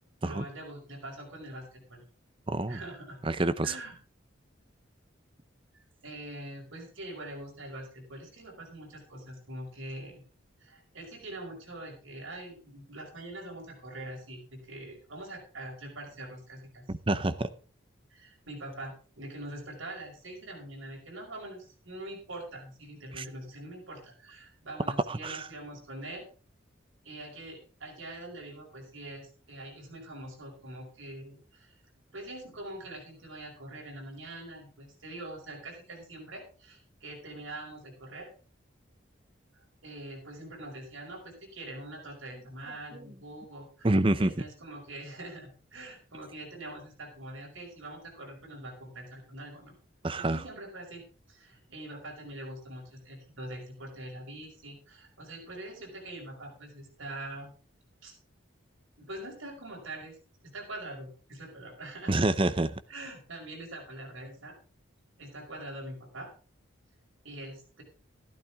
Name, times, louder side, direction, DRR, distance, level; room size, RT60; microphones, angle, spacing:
voice 1, 0.2-2.0 2.7-3.2 3.6-4.0 5.7-10.2 10.6-16.8 18.1-26.3 27.0-31.7 32.1-38.3 39.8-43.9 44.2-49.7 50.1-57.5 58.0-58.1 59.0-60.2 60.4-62.1 62.9-64.6 65.2-66.3 67.2-67.8, right 1 dB, 85° right, 1 dB, 5.4 m, -44 dB
voice 2, 2.5-2.8 3.2-3.7 17.1-17.5 23.1-23.2 25.1-25.5 42.9-43.0 43.8-44.3 50.0-50.4 62.1-62.7, right 2 dB, 25° right, 13 dB, 0.7 m, -27 dB
13.5 x 12.0 x 3.6 m, 0.38 s
head